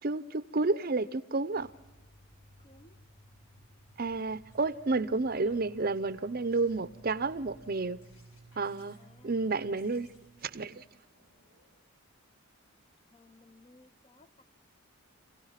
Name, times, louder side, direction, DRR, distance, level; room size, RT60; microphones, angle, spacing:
voice 1, 0.0-1.7 4.0-8.0 8.6-9.0 9.2-10.1 10.4-11.0, right 3 dB, 45° right, 0.7 m, -31 dB
sound 1, 1.5-10.9, right 2 dB, 65° left, 7.8 m, -57 dB
voice 2, 2.6-3.0 9.0-9.3 13.1-14.4, left 2 dB, 25° left, 0.6 m, -59 dB
sound 2, 4.5-5.0 5.3-11.8, left 2 dB, 85° left, 5.7 m, -66 dB
27.0 x 17.0 x 5.8 m
head